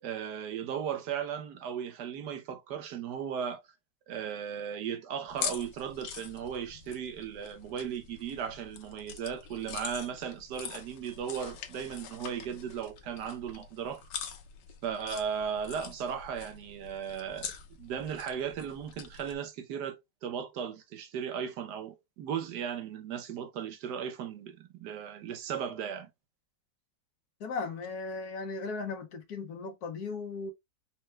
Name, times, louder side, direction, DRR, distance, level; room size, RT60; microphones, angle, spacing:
voice 1, 0.0-3.6 4.1-14.0 14.8-17.5 17.8-26.1, right 8 dB, 75° right, 1.3 m, -36 dB
sound 1, 5.3-19.4, left 7 dB, 85° left, 1.4 m, -44 dB
voice 2, 27.4-30.5, left 4 dB, 65° left, 1.3 m, -37 dB
4.5 x 2.2 x 3.0 m
omnidirectional pair, 1.8 m